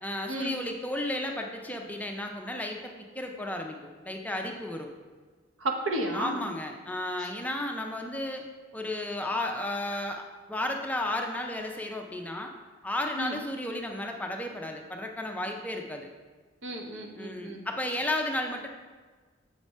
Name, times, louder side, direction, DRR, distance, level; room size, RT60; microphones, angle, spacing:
voice 1, 0.0-3.8 4.0-4.9 6.1-8.5 8.7-12.5 12.8-16.1 17.2-18.7, left 1 dB, 10° left, 2 dB, 0.5 m, -33 dB
voice 2, 5.6-6.4 7.2-7.3 13.2-13.3 16.6-17.6, right 1 dB, 80° right, 2 dB, 1.0 m, -32 dB
7.2 x 4.7 x 4.2 m, 1.4 s
head